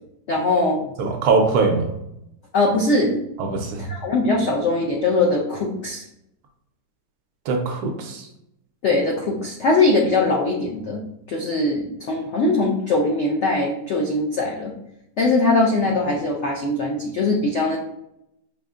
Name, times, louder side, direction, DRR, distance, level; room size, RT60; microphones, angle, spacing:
voice 1, 0.3-0.9 2.5-3.1 3.8-6.0 8.8-11.0 11.3-14.7 15.2-17.8, left 2 dB, 80° left, -1 dB, 0.6 m, -21 dB
voice 2, 1.0-1.9 3.4-3.8 7.5-8.3, right 4 dB, 75° right, 3 dB, 1.0 m, -21 dB
4.9 x 2.5 x 2.4 m, 0.80 s
omnidirectional pair, 1.8 m